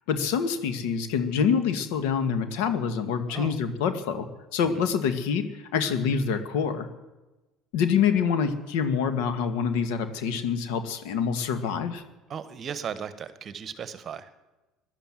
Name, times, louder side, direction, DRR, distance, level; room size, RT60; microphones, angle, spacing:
voice 1, 0.1-4.3 4.5-6.9 7.7-12.0, left 6 dB, 85° left, 10 dB, 1.8 m, -26 dB
voice 2, 12.3-14.3, right 7 dB, 35° right, 14 dB, 1.2 m, -36 dB
16.5 x 11.5 x 7.5 m, 1.1 s
cardioid pair, 140°, 0 cm